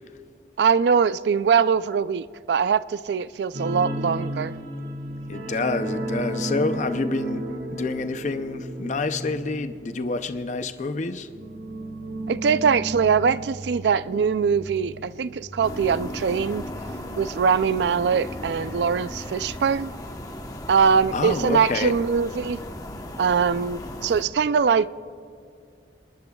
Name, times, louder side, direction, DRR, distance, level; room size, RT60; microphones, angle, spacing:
voice 1, 0.6-4.5 12.3-16.6 17.2-19.9 20.7-22.6 23.2-24.9, right 6 dB, 70° right, 0.4 m, -22 dB
sound 1, 3.5-16.8 17.1-17.3 17.7-17.8, right 1 dB, 90° right, 1.8 m, -34 dB
voice 2, 5.3-11.3 21.1-22.0, left 3 dB, 40° left, 0.5 m, -28 dB
sound 2, 15.6-24.2, left 1 dB, 20° left, 1.0 m, -36 dB
27.0 x 19.5 x 2.3 m
head